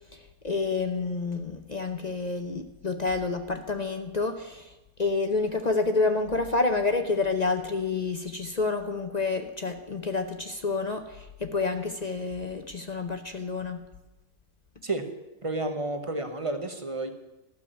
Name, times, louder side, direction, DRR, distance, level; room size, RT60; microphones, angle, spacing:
voice 1, 0.4-4.7 5.0-13.8, left 3 dB, 40° left, 6 dB, 0.6 m, -28 dB
voice 2, 15.4-17.1, right 2 dB, 25° right, 6 dB, 1.1 m, -31 dB
13.5 x 7.2 x 9.9 m, 1.1 s
omnidirectional pair, 1.7 m